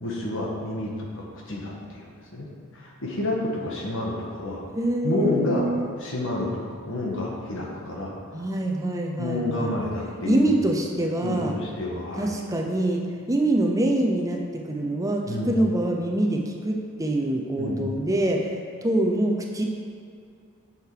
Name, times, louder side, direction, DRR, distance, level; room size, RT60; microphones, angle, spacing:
voice 1, 0.0-2.5 2.7-4.6 5.0-5.7 6.0-8.1 9.2-10.7 11.2-12.3 15.3-15.6 17.6-17.9, left 2 dB, 60° left, -2 dB, 1.6 m, -29 dB
voice 2, 4.7-5.9 8.3-9.8 10.2-11.6 12.2-13.0 13.3-18.6 18.8-19.6, right 1 dB, 15° right, 1 dB, 0.7 m, -25 dB
7.7 x 6.6 x 4.9 m, 2.4 s
head